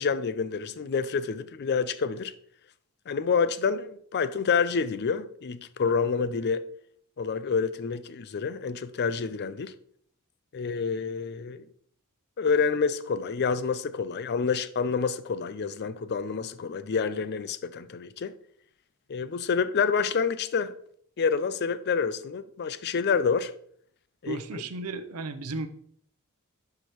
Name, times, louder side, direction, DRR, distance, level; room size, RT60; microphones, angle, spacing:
voice 1, 0.0-2.3 3.1-6.6 7.2-9.7 10.5-11.7 12.4-18.3 19.1-20.7 21.2-23.5 24.2-24.6, left 5 dB, 50° left, 0.4 m, -28 dB
voice 2, 24.2-25.7, right 3 dB, 80° right, 0.7 m, -34 dB
11.5 x 4.7 x 3.0 m
head